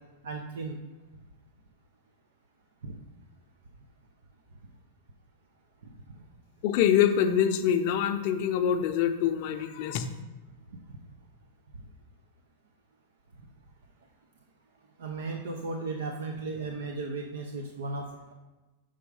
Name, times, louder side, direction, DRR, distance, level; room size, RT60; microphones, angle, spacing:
voice 1, 0.2-0.8 2.8-3.0 15.0-18.3, right 3 dB, 85° right, 3 dB, 0.6 m, -35 dB
voice 2, 6.6-10.1, left 9 dB, 50° left, 6 dB, 0.5 m, -25 dB
6.2 x 3.7 x 4.8 m, 1.2 s
supercardioid pair, 140°, 0 cm